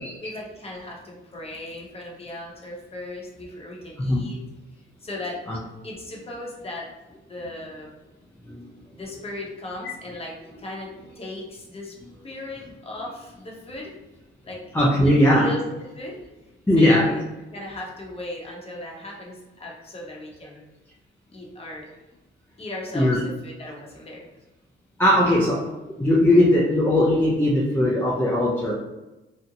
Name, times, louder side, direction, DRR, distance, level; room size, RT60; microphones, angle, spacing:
voice 1, 0.2-4.4 5.0-5.4 5.8-6.9 7.3-7.9 9.0-12.0 12.2-13.9 14.4-14.6 15.0-15.6 15.9-16.2 16.8-17.2 17.5-20.6 21.3-21.9 22.6-24.3 25.2-25.4 28.6-28.7, left 1 dB, 30° left, -2 dB, 0.8 m, -37 dB
voice 2, 14.7-15.5 16.7-17.1 22.9-23.2 25.0-25.7 26.0-28.7, left 1 dB, 10° left, -5 dB, 0.5 m, -19 dB
2.6 x 2.1 x 2.7 m, 1.0 s
cardioid pair, 90°, 20 cm